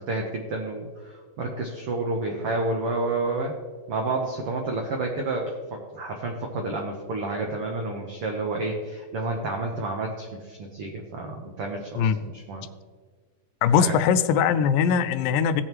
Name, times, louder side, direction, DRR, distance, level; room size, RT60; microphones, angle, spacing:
voice 1, 0.0-3.5 3.9-12.7 13.8-14.0, right 2 dB, 80° right, 1 dB, 1.3 m, -30 dB
voice 2, 13.6-15.6, left 7 dB, 85° left, 11 dB, 2.2 m, -21 dB
17.5 x 6.3 x 3.0 m, 1.5 s
omnidirectional pair, 4.0 m